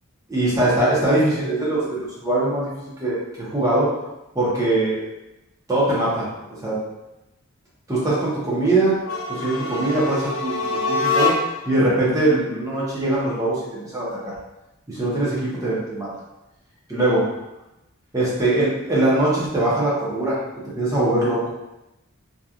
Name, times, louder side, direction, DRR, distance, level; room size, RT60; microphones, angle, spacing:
voice 1, 0.3-2.7 3.0-3.9 4.3-5.1 5.7-6.3 6.6-6.8 7.9-8.9 9.3-10.6 10.9-11.3 11.7-14.1 14.9-16.1 16.9-17.2 18.1-20.4 20.8-21.4, right 2 dB, 15° right, -8 dB, 0.6 m, -21 dB
sound 1, 9.0-11.7, left 3 dB, 65° left, 0.5 m, -24 dB
2.7 x 2.2 x 2.3 m, 0.94 s
head